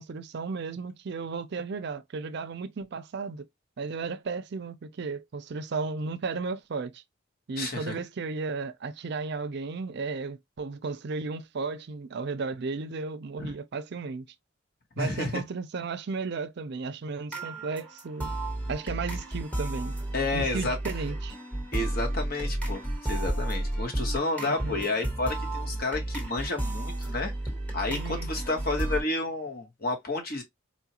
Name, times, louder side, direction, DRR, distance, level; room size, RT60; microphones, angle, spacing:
voice 1, 0.0-3.5 3.8-7.0 7.5-14.3 15.0-18.3 18.7-20.0 20.3-21.4 24.4-24.8 27.9-28.3, right 4 dB, 55° right, 0.5 m, -34 dB
voice 2, 7.6-7.9 13.4-13.5 14.9-15.4 20.1-20.8 21.7-27.3 27.7-30.4, left 2 dB, 50° left, 1.2 m, -31 dB
sound 1, 17.3-29.0, right 1 dB, 5° left, 1.2 m, -32 dB
4.4 x 2.3 x 2.8 m
head